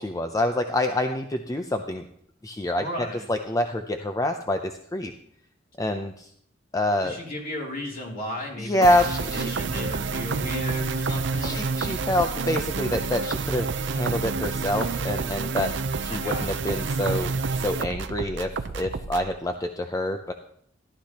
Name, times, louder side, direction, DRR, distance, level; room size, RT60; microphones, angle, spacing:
voice 1, 0.0-2.1 2.4-2.8 3.3-5.1 5.8-6.3 6.7-7.2 8.6-9.5 11.4-15.7 16.0-17.3 17.6-20.3, left 1 dB, 20° left, 6 dB, 0.5 m, -26 dB
voice 2, 2.7-3.3 7.0-11.7 16.1-17.0, left 1 dB, 50° left, -1 dB, 2.8 m, -35 dB
sound 1, 8.8-19.3, right 4 dB, 65° right, 0.6 m, -29 dB
14.5 x 12.0 x 2.9 m, 0.67 s
head